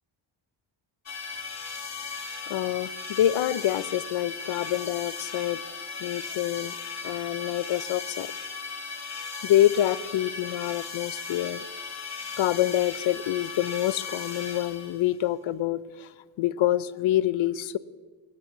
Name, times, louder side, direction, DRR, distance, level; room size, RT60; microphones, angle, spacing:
sound 1, 1.1-15.2, left 5 dB, 35° left, 1.1 m, -37 dB
voice 1, 2.5-5.6 6.0-6.7 7.0-8.3 9.4-11.6 12.4-16.1 16.4-17.8, left 13 dB, 80° left, 17 dB, 0.7 m, -26 dB
18.5 x 8.4 x 7.3 m, 1.4 s
wide cardioid pair, 175°, 46 cm